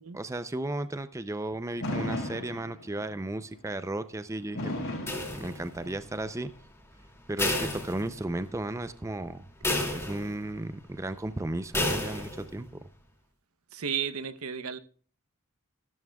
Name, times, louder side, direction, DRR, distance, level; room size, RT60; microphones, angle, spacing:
voice 1, 0.1-4.7 5.3-6.5 7.3-9.4 9.9-12.8, right 1 dB, 15° right, 0.5 m, -34 dB
Fireworks, 1.8-3.1 4.6-6.1, left 1 dB, 70° left, 5.5 m, -35 dB
sound 1, 5.1-5.9 7.4-8.5 8.9-9.0 9.6-10.5 11.7-12.5, left 1 dB, 15° left, 2.5 m, -31 dB
voice 2, 13.7-14.8, right 7 dB, 90° right, 0.8 m, -33 dB
14.5 x 12.5 x 2.3 m
head